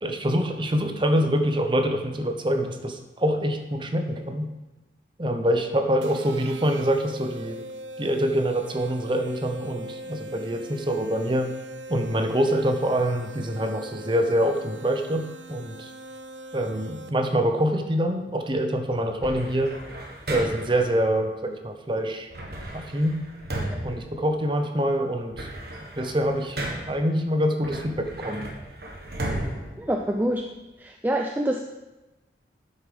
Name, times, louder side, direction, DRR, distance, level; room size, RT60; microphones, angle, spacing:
voice 1, 0.0-4.5 5.2-7.6 8.0-11.5 11.9-15.9 16.5-19.7 20.3-22.3 22.7-23.2 23.8-25.5 26.0-26.6 26.9-28.5, equal, 25° right, 6 dB, 0.8 m, -25 dB
sound 1, 6.0-17.4, right 1 dB, 85° right, 0.5 m, -41 dB
sound 2, 19.2-20.9 22.3-24.8 25.1-27.1 27.6-30.6, right 1 dB, 60° right, 1.5 m, -35 dB
voice 2, 29.8-30.4 30.8-31.6, right 1 dB, 10° right, 3 dB, 0.4 m, -26 dB
8.7 x 7.0 x 5.1 m, 1.1 s
head